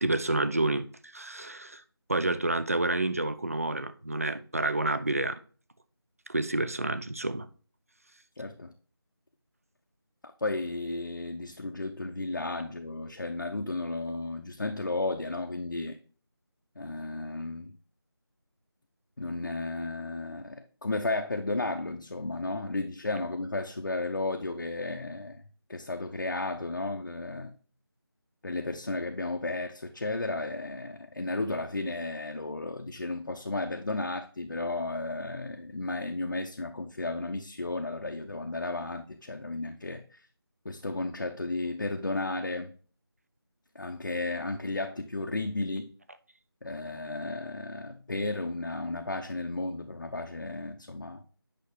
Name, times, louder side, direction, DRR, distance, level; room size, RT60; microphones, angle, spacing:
voice 1, 0.0-0.9 1.1-1.8 2.1-5.4 6.3-7.5, right 2 dB, 35° right, 0.4 m, -29 dB
voice 2, 8.4-8.7 10.4-16.0 16.8-17.7 19.2-25.4 25.7-27.6 28.4-40.0 40.6-42.7 43.7-45.9 46.6-51.2, left 2 dB, 50° left, 0.6 m, -33 dB
8.8 x 5.8 x 3.2 m
figure-of-eight pair, 170°, 13 cm